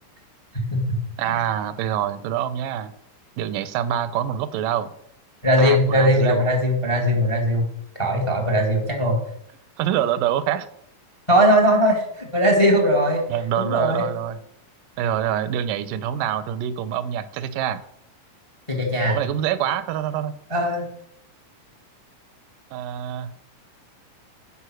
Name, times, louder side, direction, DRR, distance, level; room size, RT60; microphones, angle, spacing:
voice 1, 1.2-2.9 3.4-4.9 5.6-6.4 9.8-10.7 13.3-14.4 15.0-17.8 19.1-20.3 22.7-23.3, right 10 dB, 85° right, 14 dB, 2.3 m, -25 dB
voice 2, 5.4-7.6 8.0-9.2 11.3-13.2 13.6-14.1 18.7-19.2 20.5-20.8, equal, 15° left, 3 dB, 0.9 m, -19 dB
11.5 x 5.3 x 6.2 m, 0.73 s
omnidirectional pair, 3.8 m